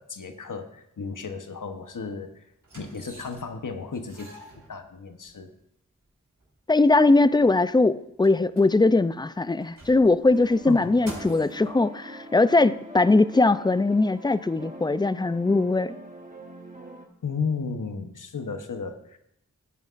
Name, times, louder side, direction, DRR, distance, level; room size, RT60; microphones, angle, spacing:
voice 1, 0.0-2.4 2.7-4.3 4.7-5.5 10.7-10.9 17.2-19.2, left 5 dB, 75° left, 1.0 m, -34 dB
sound 1, 1.8-1.9 2.6-3.6 3.9-5.3 6.0-6.1 6.4-6.5 6.9-9.1 9.5-11.7 12.5-12.6, right 1 dB, 80° right, 4.2 m, -47 dB
voice 2, 6.7-15.9, left 2 dB, 15° left, 0.3 m, -20 dB
sound 2, 10.3-17.1, right 1 dB, 25° right, 1.6 m, -44 dB
14.5 x 9.4 x 2.5 m
wide cardioid pair, 50°, 32 cm